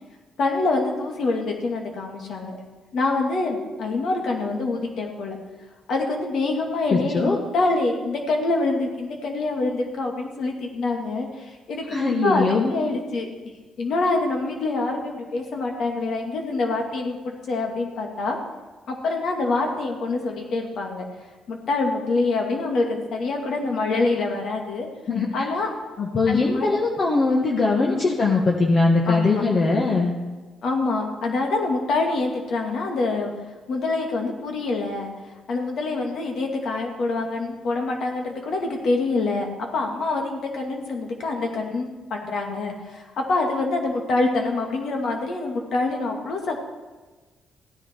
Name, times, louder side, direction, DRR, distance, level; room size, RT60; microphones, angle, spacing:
voice 1, 0.4-2.6 2.9-5.4 5.9-13.3 13.8-18.4 18.9-21.0 21.5-24.9 25.3-25.7 26.3-26.7 27.9-28.0 29.1-29.4 30.6-33.3 33.7-35.1 35.5-46.6, left 3 dB, 70° left, 2 dB, 2.3 m, -25 dB
voice 2, 6.9-7.7 11.8-12.7 25.1-25.5 26.0-30.1, left 3 dB, 45° left, -1 dB, 1.5 m, -21 dB
15.0 x 9.9 x 4.6 m, 1.3 s
cardioid pair, 90°, 0 cm